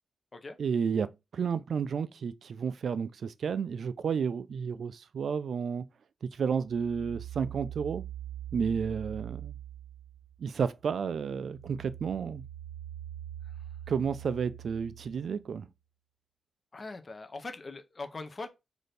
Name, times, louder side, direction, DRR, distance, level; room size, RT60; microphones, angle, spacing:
voice 1, 0.6-5.8 6.4-8.0 8.5-9.6 10.4-12.4 13.9-15.7, right 6 dB, 75° right, 0.3 m, -31 dB
sound 1, 6.7-10.6 10.9-15.5, right 11 dB, 80° left, 1.1 m, -43 dB
voice 2, 16.7-18.5, left 3 dB, 35° left, 0.5 m, -41 dB
4.1 x 2.6 x 3.3 m
wide cardioid pair, 110°, 0 cm